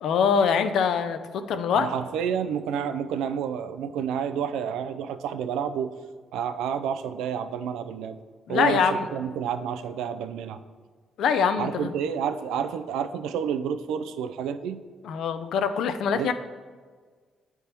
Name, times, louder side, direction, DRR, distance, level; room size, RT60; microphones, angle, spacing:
voice 1, 0.0-1.9 8.5-9.1 11.2-11.9 15.1-16.3, left 6 dB, 75° left, 10 dB, 0.5 m, -24 dB
voice 2, 1.8-5.9 6.3-8.2 8.5-10.6 11.6-14.8 16.1-16.3, right 8 dB, 90° right, 10 dB, 0.4 m, -29 dB
8.1 x 3.5 x 4.4 m, 1.5 s
cardioid pair, 90°, 0 cm